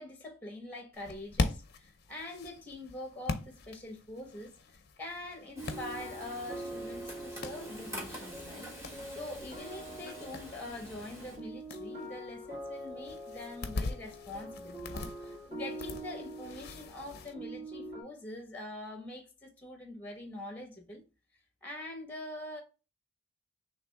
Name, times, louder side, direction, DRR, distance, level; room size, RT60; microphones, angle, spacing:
voice 1, 0.0-8.7 9.1-21.0 21.6-22.6, left 1 dB, 10° left, 0.9 m, -44 dB
sound 1, 0.9-17.3, left 3 dB, 50° left, 0.5 m, -42 dB
Frying (food), 5.6-11.4, equal, 15° right, 1.4 m, -47 dB
sound 2, 5.6-18.0, right 1 dB, 40° right, 2.3 m, -44 dB
3.3 x 3.2 x 4.5 m
head